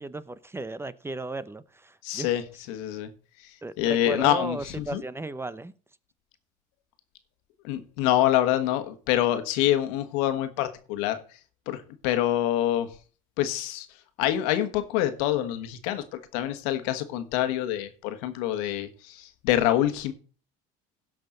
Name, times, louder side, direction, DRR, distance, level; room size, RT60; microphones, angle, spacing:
voice 1, 0.0-2.3 3.6-5.7, right 2 dB, 15° right, 0.7 m, -35 dB
voice 2, 2.0-2.4 2.7-3.1 3.4-5.0 7.6-11.2 11.7-12.9 13.4-13.9 14.2-20.1, left 12 dB, 80° left, 1.4 m, -26 dB
17.0 x 5.9 x 3.9 m
supercardioid pair, 85°, 19 cm